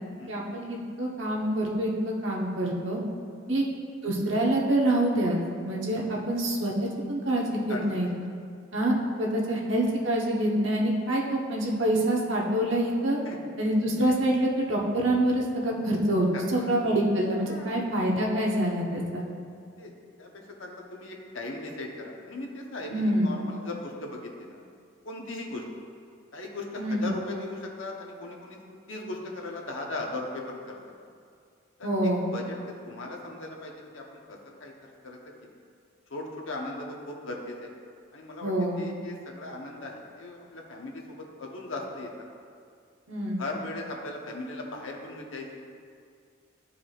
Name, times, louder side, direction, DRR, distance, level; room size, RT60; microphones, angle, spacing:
voice 1, 0.3-3.0 3.5-3.6 4.0-8.1 8.7-13.2 13.6-19.2 22.9-23.3 26.8-27.1 31.8-32.2 38.4-38.8 43.1-43.4, right 1 dB, 75° right, -3 dB, 1.1 m, -26 dB
voice 2, 7.7-8.1 11.0-11.3 13.2-13.4 16.3-16.8 17.4-17.8 19.8-19.9 20.2-20.3 20.6-24.6 25.0-25.6 26.3-28.6 28.9-30.8 31.8-32.6 32.9-34.7 35.0-35.2 36.1-37.7 38.1-42.3 43.4-45.6, left 2 dB, 85° left, 0 dB, 1.0 m, -38 dB
12.5 x 4.8 x 2.4 m, 2.2 s
head